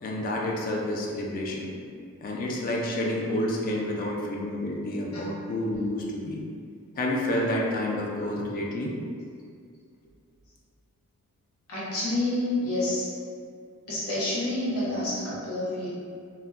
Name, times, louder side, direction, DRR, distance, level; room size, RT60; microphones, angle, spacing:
voice 1, 0.0-1.7 2.2-6.4 7.0-8.9, left 1 dB, 40° left, -2 dB, 0.4 m, -29 dB
voice 2, 11.7-13.1 13.9-15.9, left 1 dB, 80° left, -9 dB, 0.9 m, -28 dB
2.3 x 2.1 x 3.5 m, 2.2 s
head